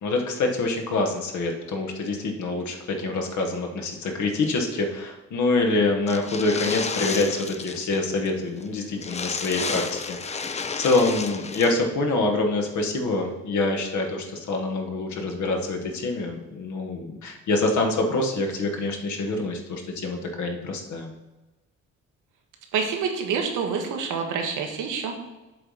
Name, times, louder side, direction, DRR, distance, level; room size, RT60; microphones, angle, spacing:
voice 1, 0.0-21.1, left 2 dB, 70° left, 3 dB, 1.3 m, -26 dB
sound 1, 6.1-8.0 8.3-8.4 8.6-8.7 9.0-11.7, left 4 dB, 20° left, 0.5 m, -32 dB
voice 2, 22.7-25.1, right 6 dB, 85° right, 3 dB, 1.3 m, -27 dB
7.6 x 3.3 x 5.5 m, 1.1 s
cardioid pair, 90°, 30 cm